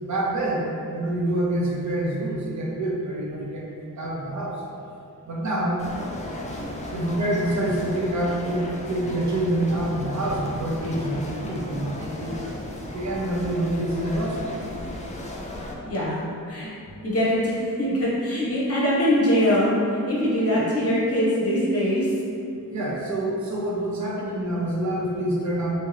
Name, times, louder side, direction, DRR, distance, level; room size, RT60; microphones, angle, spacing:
voice 1, 0.0-3.7 4.0-4.6 5.2-5.8 6.9-12.4 12.9-14.5 20.5-20.7 22.7-25.8, right 1 dB, 50° right, -3 dB, 0.6 m, -26 dB
sound 1, 5.8-15.7, left 1 dB, 20° left, 0.3 m, -35 dB
voice 2, 15.8-16.2 16.5-16.7 17.0-22.1, equal, 40° left, -7 dB, 0.9 m, -22 dB
2.8 x 2.1 x 2.5 m, 2.6 s
cardioid pair, 50°, 36 cm